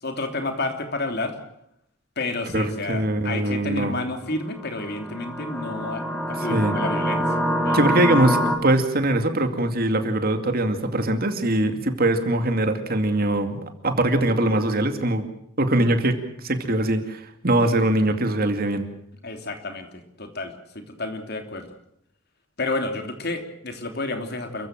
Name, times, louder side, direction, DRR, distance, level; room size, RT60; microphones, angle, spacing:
voice 1, 0.0-1.4 2.2-7.3 7.6-7.8 8.1-8.3 19.2-21.7 22.6-24.7, left 2 dB, 55° left, 6 dB, 3.2 m, -30 dB
voice 2, 2.5-3.9 6.5-6.7 7.7-15.3 15.6-16.2 16.4-18.8, right 1 dB, 50° right, 7 dB, 2.4 m, -22 dB
sound 1, 4.6-8.6, equal, 5° left, 3.2 m, -25 dB
29.0 x 15.0 x 7.6 m, 0.74 s
head